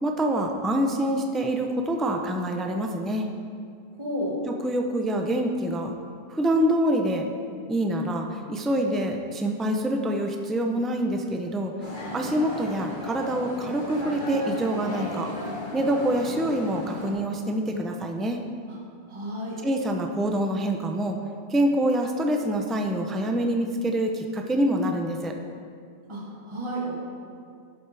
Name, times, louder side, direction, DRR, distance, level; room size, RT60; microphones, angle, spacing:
voice 1, 0.0-3.3 4.5-5.9 6.3-7.3 7.7-11.7 12.1-15.3 15.7-18.4 19.6-21.2 21.5-25.4, right 1 dB, ahead, 3 dB, 0.4 m, -26 dB
voice 2, 3.9-4.4 18.7-18.8 19.1-19.6 26.1-26.9, equal, 25° right, -5 dB, 1.6 m, -32 dB
sound 1, 11.8-17.1, left 1 dB, 45° left, 1.8 m, -35 dB
11.5 x 7.9 x 3.4 m, 2.3 s
omnidirectional pair, 1.1 m